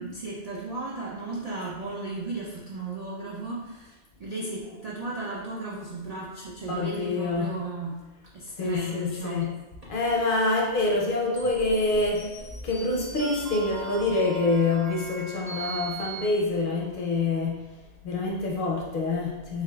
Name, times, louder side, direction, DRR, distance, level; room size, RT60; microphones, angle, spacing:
voice 1, 0.0-8.0 8.3-9.5, right 2 dB, 60° right, -4 dB, 0.4 m, -35 dB
voice 2, 6.7-7.6 8.6-9.5 9.9-12.3 12.6-17.7 18.0-19.6, left 3 dB, 60° left, -2 dB, 0.7 m, -26 dB
sound 1, 11.4-16.3, right 4 dB, 20° right, 0.7 m, -39 dB
3.7 x 3.4 x 2.2 m, 1.1 s
omnidirectional pair, 1.2 m